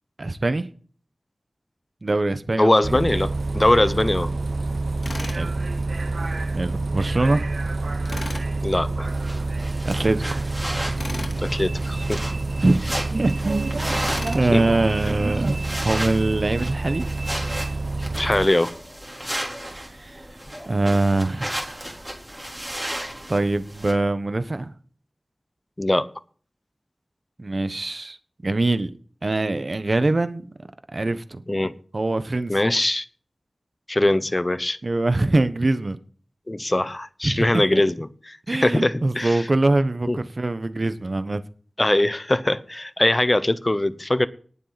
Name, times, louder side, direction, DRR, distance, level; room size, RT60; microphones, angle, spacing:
voice 1, 0.2-0.7 2.0-2.8 5.4-5.5 6.6-7.4 9.8-10.4 12.6-13.9 14.3-15.6 15.8-17.0 19.7-20.2 20.7-21.9 23.3-24.7 27.4-28.2 28.4-28.9 29.2-30.4 30.9-31.4 31.9-32.6 34.8-36.0 37.2-37.8 38.5-41.4, right 2 dB, 50° right, 12 dB, 1.2 m, -23 dB
voice 2, 2.6-4.3 8.6-9.1 11.4-12.2 14.5-14.6 18.2-18.7 25.8-26.1 31.5-31.8 32.5-33.0 33.9-34.8 36.5-39.4 40.1-40.2 41.8-44.3, left 1 dB, 30° left, 15 dB, 0.9 m, -21 dB
Bus, 2.8-18.5, right 3 dB, 70° right, 0.4 m, -27 dB
Tools, 5.0-5.4 8.0-8.5 11.0-11.4 14.0-14.5, left 2 dB, 65° left, 2.2 m, -34 dB
sound 1, 9.0-23.9, right 1 dB, 15° right, 3.9 m, -34 dB
19.0 x 7.4 x 4.2 m, 0.43 s
wide cardioid pair, 70°, 0 cm